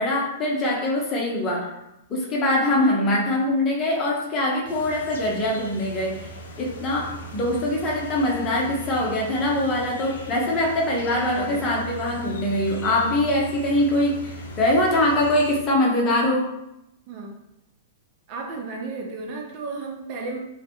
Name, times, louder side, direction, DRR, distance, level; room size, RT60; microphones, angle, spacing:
voice 1, 0.0-1.7 2.1-6.3 6.6-16.5, left 1 dB, 35° left, -2 dB, 0.7 m, -23 dB
sound 1, 4.7-15.6, right 1 dB, 75° left, 0.3 m, -39 dB
voice 2, 11.3-11.7 17.1-17.4 18.3-20.4, right 3 dB, 50° right, 1 dB, 0.5 m, -33 dB
2.1 x 2.1 x 2.9 m, 0.85 s
hypercardioid pair, 105°, 0 cm